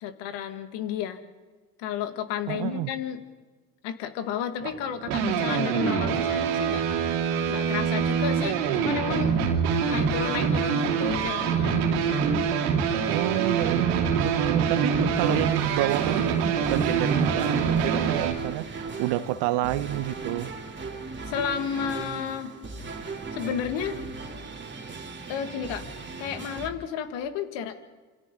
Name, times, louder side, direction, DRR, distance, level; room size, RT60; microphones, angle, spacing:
voice 1, 0.0-1.2 1.8-3.2 3.8-6.8 7.5-9.3 9.9-11.8 15.3-15.5 21.3-22.5 23.3-24.0 25.3-25.9 26.2-27.7, left 8 dB, 70° left, 9 dB, 2.0 m, -32 dB
voice 2, 2.5-2.9 13.1-20.5, right 15 dB, 70° right, 13 dB, 1.2 m, -29 dB
sound 1, 4.6-18.3, right 6 dB, 85° right, 2.9 m, -25 dB
sound 2, 15.1-26.7, right 4 dB, 25° right, 2.8 m, -38 dB
27.5 x 26.0 x 3.8 m, 1.3 s
hypercardioid pair, 60°, 44 cm